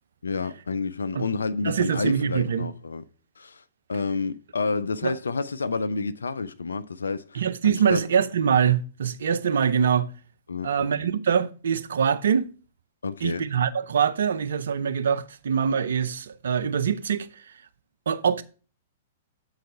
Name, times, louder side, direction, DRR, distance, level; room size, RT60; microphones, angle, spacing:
voice 1, 0.2-3.0 3.4-3.6 3.9-8.0 10.5-10.7 11.0-11.1 13.0-13.5, left 4 dB, 80° left, 0.5 m, -29 dB
voice 2, 1.6-2.7 5.0-5.1 7.3-10.1 10.6-12.5 13.2-17.4 18.1-18.4, right 7 dB, 70° right, 0.6 m, -24 dB
7.7 x 4.0 x 5.4 m
figure-of-eight pair, 110°, 0 cm